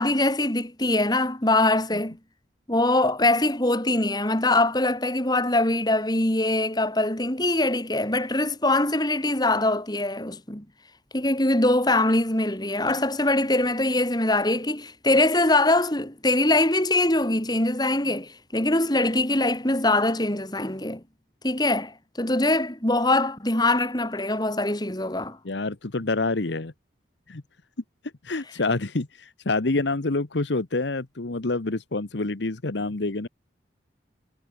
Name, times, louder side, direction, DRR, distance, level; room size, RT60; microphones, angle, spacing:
voice 1, 0.0-2.2 2.7-10.6 11.1-21.0 21.4-25.4, left 2 dB, 20° left, 3.3 m, -23 dB
voice 2, 25.4-26.7 27.3-27.4 28.2-33.3, left 3 dB, 75° left, 1.1 m, -27 dB
head